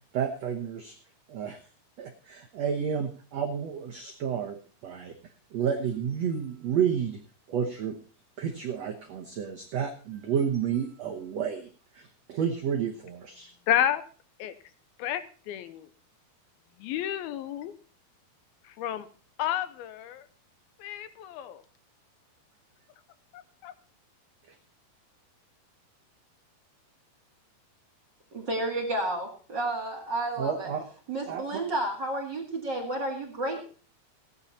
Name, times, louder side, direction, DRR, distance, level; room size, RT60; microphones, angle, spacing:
voice 1, 0.1-0.9 1.3-1.6 2.0-4.6 4.8-5.1 5.5-7.2 7.5-7.9 8.4-11.7 11.9-13.5 30.4-30.8 31.3-31.6, right 7 dB, 85° right, 3 dB, 1.5 m, -30 dB
voice 2, 13.7-14.0 14.4-14.5 15.0-15.9 16.8-17.7 18.6-19.1 19.4-20.2 20.8-21.6 23.3-23.7, left 11 dB, 75° left, 13 dB, 2.5 m, -30 dB
voice 3, 28.3-30.7 31.1-33.6, right 1 dB, 40° right, 1 dB, 1.9 m, -31 dB
16.5 x 9.8 x 4.2 m, 0.38 s
omnidirectional pair, 4.7 m